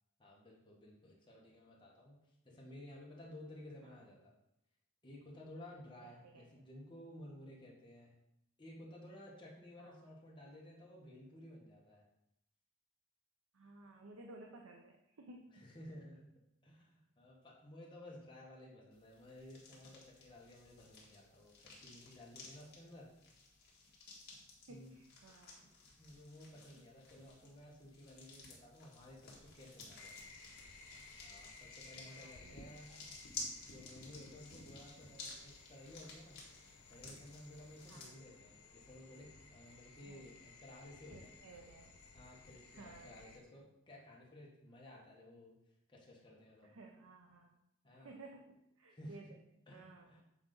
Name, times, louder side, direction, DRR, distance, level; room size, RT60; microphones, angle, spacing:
voice 1, 0.2-4.3 5.0-8.2 8.6-12.0 15.5-16.3 16.6-23.1 24.7-24.9 25.6-30.1 30.8-33.0 33.6-36.4 36.9-41.3 42.1-45.6 45.9-46.7 47.8-48.1 48.9-49.2 49.7-50.2, left 1 dB, 20° left, -4 dB, 1.4 m, -55 dB
voice 2, 6.0-6.5 9.8-10.1 13.5-15.7 24.2-24.4 24.7-25.7 26.8-26.9 32.0-33.0 34.5-34.7 37.9-38.1 40.0-40.3 41.1-42.0 42.7-43.3 46.6-47.6 47.9-49.3 49.7-50.2, right 2 dB, 70° right, 2 dB, 0.6 m, -57 dB
sound 1, 18.9-38.1, left 3 dB, 50° left, 1.6 m, -54 dB
sound 2, 30.0-43.4, left 3 dB, 90° left, 0.9 m, -58 dB
7.2 x 4.1 x 3.8 m, 0.82 s
head